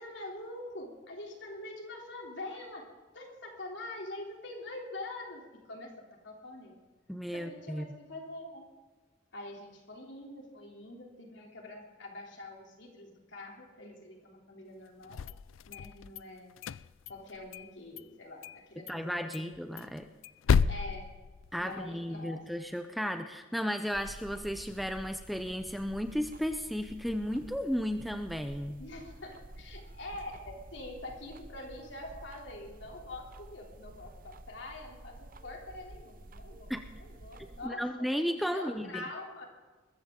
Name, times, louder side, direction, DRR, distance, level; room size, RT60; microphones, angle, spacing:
voice 1, 0.0-2.9 3.1-6.8 7.3-8.7 9.3-15.2 15.7-16.5 17.1-19.5 20.7-21.1 21.6-22.4 28.8-37.9 38.5-39.5, left 2 dB, 65° left, 0 dB, 3.2 m, -45 dB
voice 2, 7.1-7.9 18.9-20.1 21.5-28.8 36.7-36.8 37.6-39.0, equal, ahead, 7 dB, 0.5 m, -34 dB
sound 1, 15.0-16.2 16.6-17.7 18.0-18.1 18.4-18.6 18.9-19.0 19.3-21.9, left 6 dB, 90° left, 0.4 m, -31 dB
sound 2, 23.9-37.7, right 1 dB, 45° right, 0.8 m, -50 dB
21.5 x 14.0 x 3.8 m, 1.3 s
head